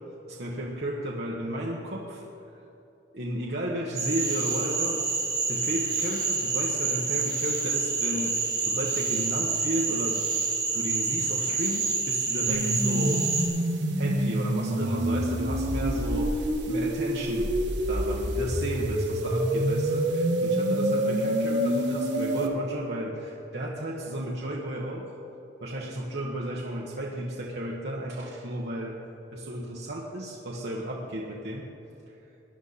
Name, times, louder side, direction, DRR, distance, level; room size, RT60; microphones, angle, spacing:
voice 1, 0.3-2.2 2.5-2.6 3.1-5.0 5.5-10.2 10.7-13.3 14.0-17.5 17.9-25.1 25.6-29.0 29.3-31.7, right 1 dB, 65° right, -4 dB, 1.4 m, -33 dB
Cricket / Frog, 3.9-13.4, right 4 dB, 20° right, 3.1 m, -28 dB
sound 1, 12.5-22.5, right 1 dB, 80° right, 1.6 m, -27 dB
20.0 x 11.0 x 4.2 m, 2.9 s
head